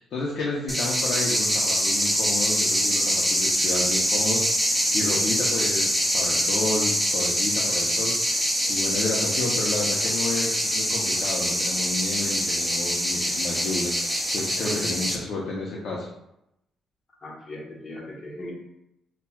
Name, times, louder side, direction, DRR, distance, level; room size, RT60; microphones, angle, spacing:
voice 1, 0.0-8.4 8.7-16.1, left 3 dB, 65° left, -4 dB, 0.6 m, -31 dB
sound 1, 0.7-15.2, equal, 5° right, 0.6 m, -24 dB
voice 2, 17.2-18.5, left 1 dB, 40° left, -2 dB, 1.1 m, -38 dB
5.6 x 2.2 x 2.2 m, 0.82 s
cardioid pair, 90°, 0 cm